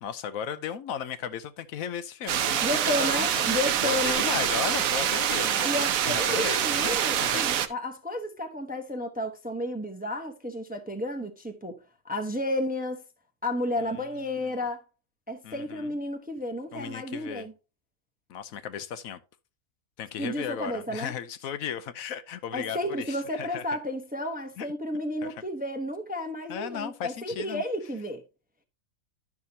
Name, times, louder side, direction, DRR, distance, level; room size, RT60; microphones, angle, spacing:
voice 1, 0.0-7.4 13.8-14.5 15.4-15.9 16.7-17.5 18.3-19.2 20.0-23.6 24.6-24.7 25.2-25.3 26.5-27.6, left 8 dB, 80° left, 1.1 m, -36 dB
sound 1, 2.3-7.7, right 10 dB, 80° right, 1.1 m, -26 dB
voice 2, 2.6-4.3 5.6-13.0 13.4-14.8 15.3-17.5 20.2-21.1 22.5-28.2, left 1 dB, 10° right, 0.6 m, -32 dB
11.0 x 5.9 x 2.7 m
omnidirectional pair, 1.4 m